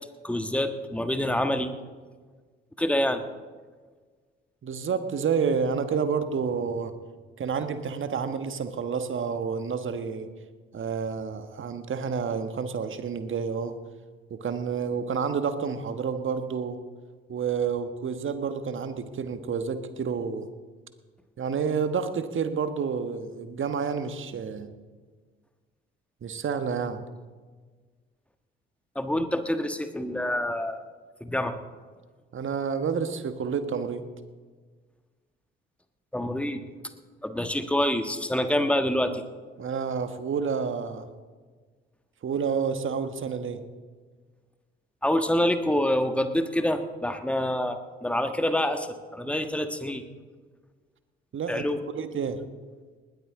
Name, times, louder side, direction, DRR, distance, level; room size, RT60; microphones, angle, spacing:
voice 1, 0.2-1.7 2.8-3.2 28.9-30.8 31.2-31.6 36.1-36.6 37.2-39.2 45.0-48.9 49.1-50.0 51.5-51.8, left 1 dB, 5° left, 8 dB, 1.5 m, -26 dB
voice 2, 4.6-6.9 7.4-10.3 10.7-13.8 14.3-16.8 17.3-20.5 21.4-24.7 26.2-27.0 32.3-34.1 39.6-41.0 42.2-43.6 51.3-51.7 51.9-52.4, right 6 dB, 45° right, 9 dB, 1.4 m, -29 dB
20.0 x 13.0 x 3.7 m, 1.4 s
figure-of-eight pair, 45°, 29 cm